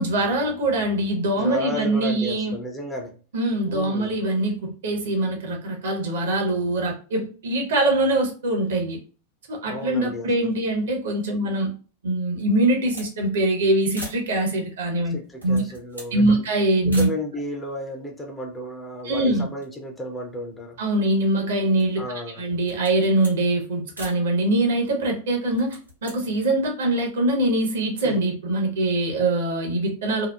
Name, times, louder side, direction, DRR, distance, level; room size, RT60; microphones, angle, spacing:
voice 1, 0.0-2.6 3.3-9.0 9.5-11.7 12.0-15.1 15.4-15.6 16.1-17.1 19.0-19.5 20.8-22.0 22.4-30.3, right 1 dB, 60° right, 0.7 m, -23 dB
voice 2, 1.3-3.1 3.7-4.1 9.6-10.5 15.1-16.4 16.8-20.8 22.0-22.4 28.0-28.2, equal, 10° left, 0.5 m, -33 dB
sound 1, 12.4-13.1 13.4-13.5 13.9-14.3 15.2-16.2 16.9-17.2 18.0-18.1 18.3-19.2 19.5-20.8 21.3-22.0 22.6-23.4 23.9-24.2 25.4-26.2, equal, 90° right, 0.9 m, -42 dB
2.8 x 2.0 x 2.2 m
figure-of-eight pair, 90°, 0 cm